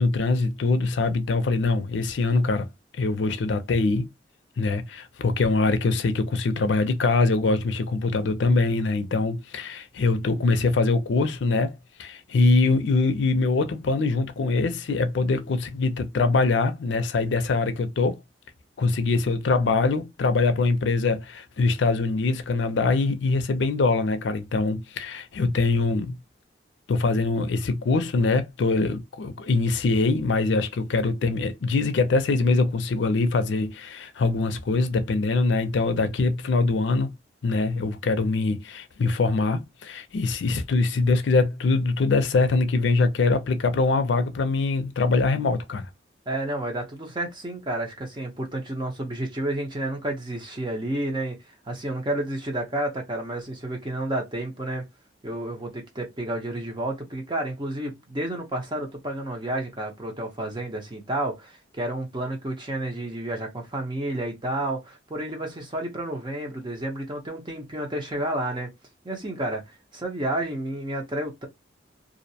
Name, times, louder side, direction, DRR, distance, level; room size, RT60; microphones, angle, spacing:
voice 1, 0.0-2.7 3.0-4.1 4.6-11.7 12.0-18.2 18.8-26.2 26.9-37.1 37.4-45.9, left 3 dB, 75° left, 0.4 m, -23 dB
voice 2, 46.3-51.4 51.7-54.9 55.2-68.7 69.0-71.5, right 1 dB, 25° right, 0.7 m, -30 dB
2.5 x 2.0 x 2.6 m
head